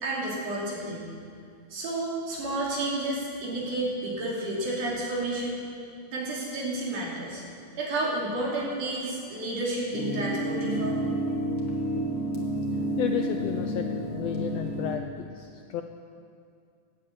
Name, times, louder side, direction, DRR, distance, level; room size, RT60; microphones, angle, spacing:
voice 1, 0.0-1.1 1.7-5.6 6.1-7.4 7.8-11.0, right 2 dB, 85° right, -5 dB, 4.4 m, -31 dB
sound 1, 9.9-15.0, right 1 dB, 35° left, 1.8 m, -30 dB
voice 2, 13.0-15.8, left 9 dB, 80° left, 6 dB, 1.5 m, -32 dB
13.5 x 8.3 x 8.6 m, 2.3 s
omnidirectional pair, 3.5 m